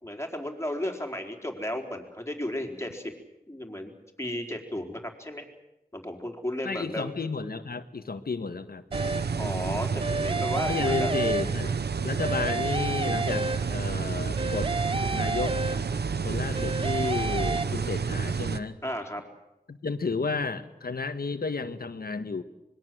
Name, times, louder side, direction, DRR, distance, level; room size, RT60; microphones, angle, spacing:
voice 1, 0.0-3.1 3.5-3.9 4.2-5.5 5.9-7.1 9.4-11.1 18.8-19.2, left 1 dB, 15° left, 4 dB, 4.6 m, -34 dB
voice 2, 6.6-8.8 10.7-11.7 12.0-14.7 15.1-15.6 16.2-18.8 19.7-22.4, left 4 dB, 70° left, 10 dB, 1.6 m, -32 dB
sound 1, 8.9-9.5 10.0-11.9 12.2-14.0 14.4-16.2 16.5-17.6, right 2 dB, 35° right, 0.9 m, -31 dB
sound 2, 8.9-18.6, right 5 dB, 90° right, 1.0 m, -30 dB
25.5 x 21.5 x 7.9 m, 0.91 s
cardioid pair, 45°, 16 cm